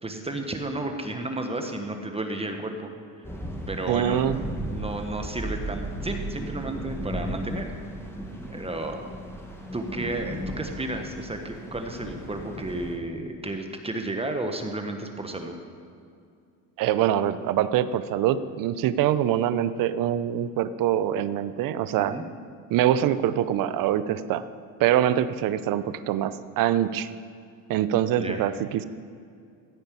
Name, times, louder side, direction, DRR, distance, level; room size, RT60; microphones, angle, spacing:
voice 1, 0.0-2.9 3.7-4.3 4.7-7.7 8.5-9.1 9.7-15.5 22.0-22.2 28.2-28.4, right 2 dB, 15° right, 4 dB, 1.3 m, -32 dB
sound 1, 3.2-13.0, equal, 5° left, 1.8 m, -35 dB
voice 2, 3.9-4.4 16.8-22.2 22.7-24.4 24.8-27.1 27.7-28.8, right 11 dB, 55° right, 14 dB, 0.8 m, -24 dB
15.0 x 5.2 x 8.4 m, 2.4 s
supercardioid pair, 95°, 41 cm